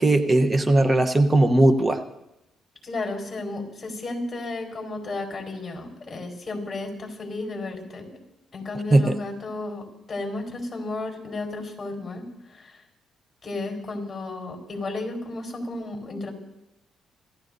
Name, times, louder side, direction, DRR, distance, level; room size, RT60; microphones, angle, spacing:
voice 1, 0.0-2.0 8.9-9.2, right 2 dB, 25° right, 8 dB, 1.0 m, -18 dB
voice 2, 2.8-8.2 8.5-12.8 13.4-16.3, left 2 dB, 25° left, 2 dB, 4.6 m, -33 dB
27.0 x 14.5 x 2.7 m, 0.89 s
cardioid pair, 90°, 0 cm